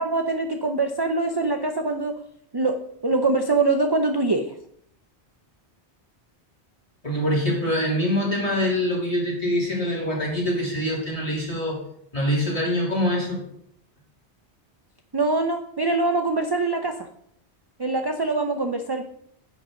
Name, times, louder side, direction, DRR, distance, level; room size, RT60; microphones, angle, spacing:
voice 1, 0.0-2.1 2.5-2.8 3.0-4.5 15.1-17.1 17.8-19.0, right 3 dB, 30° right, 5 dB, 0.5 m, -23 dB
voice 2, 7.0-11.8 12.1-13.4, equal, 30° left, -4 dB, 3.2 m, -24 dB
10.5 x 8.3 x 3.8 m, 0.69 s
omnidirectional pair, 1.1 m